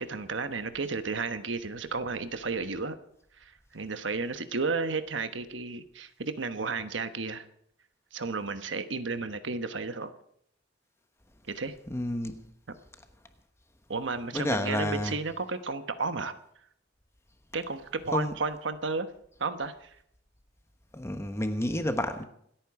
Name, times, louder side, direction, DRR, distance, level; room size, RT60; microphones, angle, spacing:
voice 1, 0.0-3.0 3.4-7.4 8.1-10.1 11.5-11.7 13.9-16.3 17.5-19.1 19.4-19.9, right 4 dB, 75° right, 1.2 m, -33 dB
voice 2, 11.9-12.4 14.3-15.2 18.1-18.3 20.9-22.2, left 1 dB, 15° left, 1.1 m, -30 dB
27.0 x 9.1 x 4.9 m
head